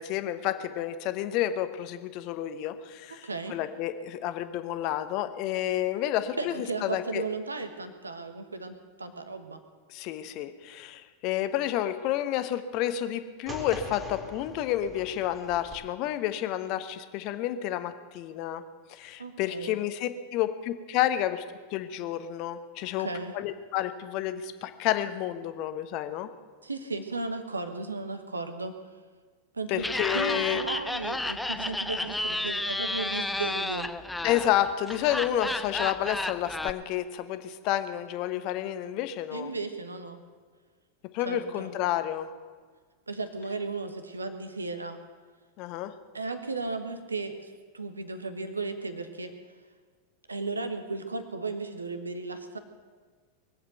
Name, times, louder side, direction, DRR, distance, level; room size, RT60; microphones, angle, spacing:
voice 1, 0.0-6.5 6.8-7.2 9.9-18.6 18.9-21.4 21.7-23.1 23.3-26.3 29.7-30.6 34.2-39.5 41.1-42.3 45.6-45.9, left 12 dB, 40° left, 10 dB, 1.0 m, -30 dB
voice 2, 3.1-3.5 6.4-9.6 19.2-19.8 22.8-23.3 26.6-28.7 29.5-29.9 30.1-33.9 39.3-40.2 41.2-41.7 43.1-45.0 46.1-49.3 50.3-52.6, right 3 dB, 80° right, 9 dB, 1.3 m, -35 dB
sound 1, 13.5-15.7, right 1 dB, 15° right, 2.7 m, -42 dB
Laughter, 29.8-36.7, left 2 dB, 5° left, 0.6 m, -32 dB
22.0 x 7.9 x 8.0 m, 1.5 s
figure-of-eight pair, 90°, 0 cm